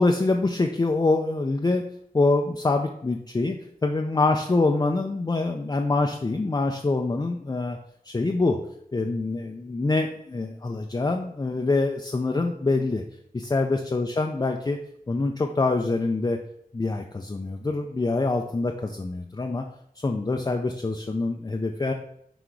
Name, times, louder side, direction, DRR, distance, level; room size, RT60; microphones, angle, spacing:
voice 1, 0.0-1.8 2.1-7.8 8.1-8.6 8.9-13.0 13.3-14.8 15.1-16.4 16.7-19.6 20.0-21.9, left 3 dB, 25° left, 3 dB, 0.5 m, -25 dB
6.0 x 3.9 x 4.6 m, 0.71 s
wide cardioid pair, 90°, 15 cm